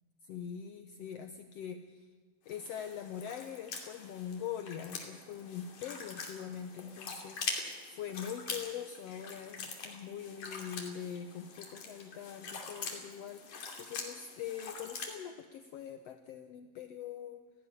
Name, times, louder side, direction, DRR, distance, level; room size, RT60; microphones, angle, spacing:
voice 1, 0.2-2.1 2.5-17.4, left 8 dB, 75° left, 8 dB, 1.4 m, -43 dB
sound 1, 2.5-15.2, left 4 dB, 55° left, 3.8 m, -44 dB
18.0 x 16.0 x 9.9 m, 1.5 s
omnidirectional pair, 4.0 m